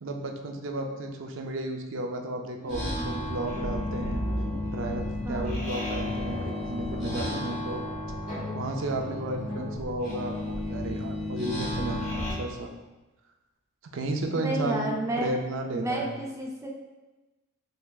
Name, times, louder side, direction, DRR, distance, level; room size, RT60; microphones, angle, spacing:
voice 1, 0.0-4.2 4.7-7.8 8.5-10.4 10.6-12.7 13.9-16.1, right 2 dB, 65° right, 3 dB, 0.5 m, -33 dB
voice 2, 2.6-3.2 5.2-5.6 14.3-15.3 15.7-16.7, right 1 dB, 15° right, -1 dB, 0.5 m, -32 dB
sound 1, 2.7-12.3, left 1 dB, 35° left, 1.5 m, -32 dB
4.6 x 3.2 x 2.3 m, 1.1 s
head